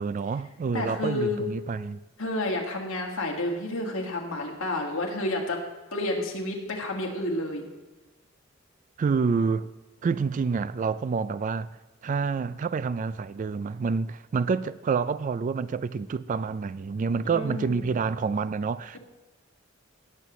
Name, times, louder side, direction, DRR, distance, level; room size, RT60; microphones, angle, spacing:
voice 1, 0.0-2.0 9.0-9.7 10.0-11.7 12.0-19.0, right 5 dB, 40° right, 0.3 m, -28 dB
voice 2, 0.7-1.4 2.2-5.6 5.9-7.7 17.3-17.9, left 1 dB, 85° left, 1.9 m, -30 dB
18.0 x 7.4 x 3.1 m
head